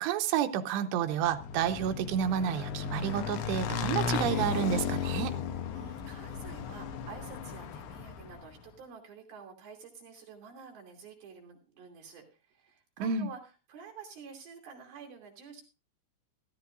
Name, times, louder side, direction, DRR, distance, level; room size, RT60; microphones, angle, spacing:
voice 1, 0.0-5.4 13.0-13.3, right 9 dB, 85° right, 2.9 m, -30 dB
Motorcycle / Engine, 1.2-8.5, left 6 dB, 85° left, 3.2 m, -35 dB
voice 2, 5.7-13.4 13.7-15.6, right 5 dB, 60° right, 4.5 m, -49 dB
15.5 x 14.0 x 2.6 m
omnidirectional pair, 4.9 m